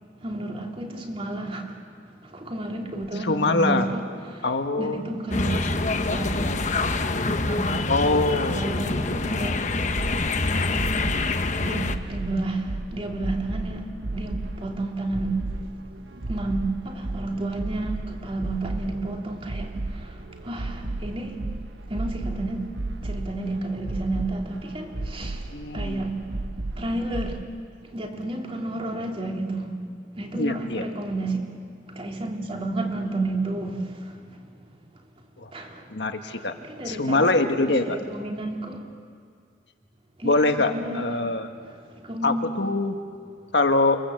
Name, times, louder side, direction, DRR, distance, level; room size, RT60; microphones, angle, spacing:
voice 1, 0.2-1.8 2.2-4.5 4.8-6.6 7.2-7.7 8.3-10.0 10.6-10.9 11.3-13.9 14.1-15.6 16.2-21.4 21.9-26.2 26.7-27.4 27.9-29.8 30.1-31.5 31.9-34.4 34.6-34.8 35.5-35.9 36.2-38.9 40.2-41.3 41.6-42.4, right 2 dB, 30° right, 1 dB, 3.0 m, -31 dB
voice 2, 3.2-3.9 4.4-5.1 7.9-8.6 25.5-26.0 30.3-30.8 35.4-35.5 35.9-36.5 36.9-38.0 40.2-41.5 42.2-43.0 43.5-44.0, left 2 dB, 65° left, 6 dB, 1.6 m, -23 dB
sound 1, 5.3-12.0, left 3 dB, 40° left, 1.1 m, -26 dB
sound 2, 9.9-27.4, right 2 dB, 70° right, 1.0 m, -34 dB
28.0 x 23.0 x 7.9 m, 2.2 s
head